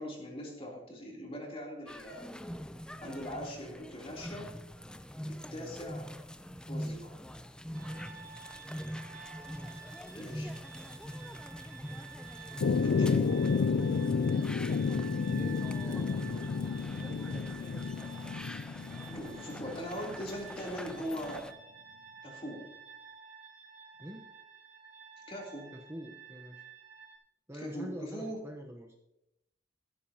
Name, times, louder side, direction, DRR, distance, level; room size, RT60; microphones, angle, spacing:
voice 1, 0.0-2.3 3.0-4.5 5.3-6.1 6.7-7.2 10.1-10.5 12.8-13.4 19.1-21.5 22.2-22.7 25.3-25.7 27.6-28.4, equal, 30° left, -1 dB, 3.2 m, -41 dB
sound 1, 1.9-21.5, equal, 5° left, 0.5 m, -44 dB
sound 2, 7.7-27.2, right 7 dB, 75° right, 3.2 m, -51 dB
voice 2, 10.2-10.6 12.7-13.1 15.3-16.4 16.9-17.9 18.4-18.7 24.0-24.2 25.7-26.7 27.5-29.0, equal, 15° right, 1 dB, 1.0 m, -46 dB
sound 3, 12.6-20.4, left 5 dB, 85° left, 0.4 m, -31 dB
15.5 x 13.0 x 2.9 m, 0.85 s
head